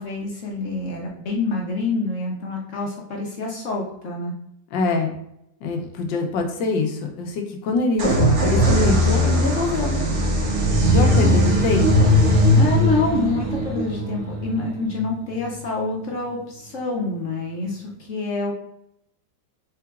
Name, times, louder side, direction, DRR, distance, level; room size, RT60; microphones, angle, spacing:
voice 1, 0.0-4.3 11.0-11.4 12.5-18.5, left 3 dB, 55° left, -1 dB, 0.9 m, -27 dB
voice 2, 4.7-5.1 5.6-10.0 10.9-12.2, left 3 dB, 80° left, 3 dB, 1.4 m, -24 dB
sound 1, 8.0-15.6, equal, 55° right, 0.8 m, -19 dB
4.7 x 3.7 x 2.3 m, 0.75 s
omnidirectional pair, 2.0 m